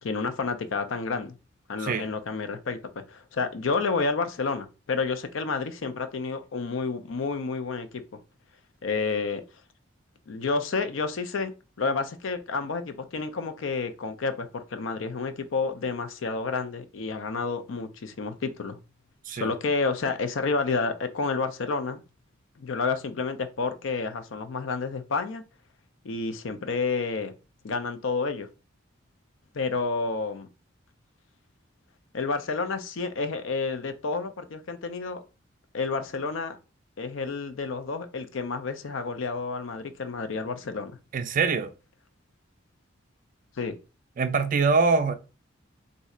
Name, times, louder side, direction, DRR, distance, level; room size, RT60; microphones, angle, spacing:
voice 1, 0.0-1.4 1.7-8.0 8.8-9.4 10.3-11.5 11.8-18.8 19.3-22.0 22.6-25.4 26.0-27.3 27.6-28.5 29.5-30.5 32.1-35.2 35.7-36.6 37.0-41.0 43.6-43.8, left 4 dB, 80° left, 0.5 m, -30 dB
voice 2, 41.1-41.7 44.2-45.1, right 4 dB, 40° right, 0.4 m, -23 dB
2.6 x 2.4 x 4.1 m
head